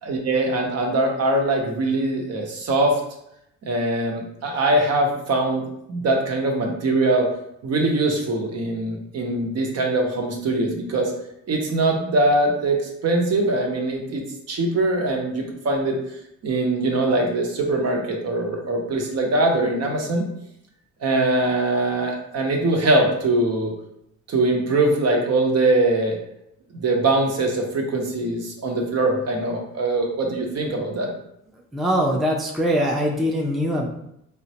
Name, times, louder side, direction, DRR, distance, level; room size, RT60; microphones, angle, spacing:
voice 1, 0.0-3.0 3.6-7.3 7.6-11.1 11.5-16.0 16.4-20.3 21.0-23.7 24.3-26.2 26.7-31.1, right 2 dB, 55° right, 1 dB, 0.8 m, -22 dB
voice 2, 31.7-33.9, equal, ahead, -1 dB, 0.4 m, -22 dB
3.7 x 2.1 x 2.7 m, 0.77 s
cardioid pair, 90°, 30 cm